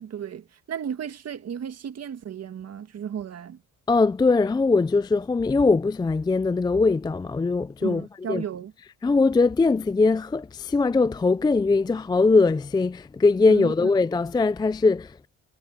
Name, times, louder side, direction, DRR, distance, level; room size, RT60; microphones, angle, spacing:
voice 1, 0.0-3.6 7.8-8.7 13.5-13.9, right 8 dB, 55° right, 2.0 m, -34 dB
voice 2, 3.9-8.4 9.0-15.3, left 3 dB, 15° left, 0.4 m, -21 dB
cardioid pair, 90°, 30 cm